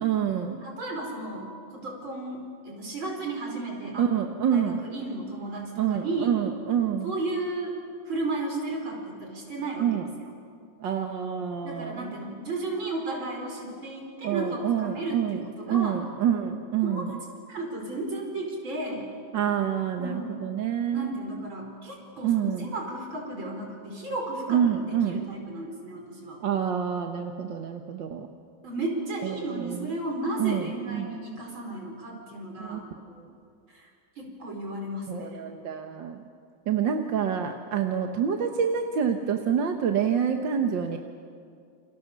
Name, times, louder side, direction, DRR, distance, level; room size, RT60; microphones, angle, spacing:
voice 1, 0.0-0.6 4.0-4.8 5.8-7.1 9.8-10.1 10.8-12.2 14.2-17.2 19.3-21.1 22.2-22.7 24.5-25.2 26.4-28.3 29.2-29.9 30.4-31.1 32.6-32.8 33.2-33.3 35.1-36.2 36.7-41.0, right 8 dB, 70° right, 5 dB, 1.9 m, -27 dB
voice 2, 0.6-4.1 4.5-6.3 7.0-7.7 8.1-10.0 11.6-16.0 16.8-17.1 17.5-19.1 20.0-20.4 20.9-26.4 28.6-32.9 33.7-33.9 34.2-35.4, right 2 dB, 85° right, 1 dB, 5.7 m, -34 dB
29.0 x 29.0 x 6.9 m, 2.3 s
omnidirectional pair, 2.1 m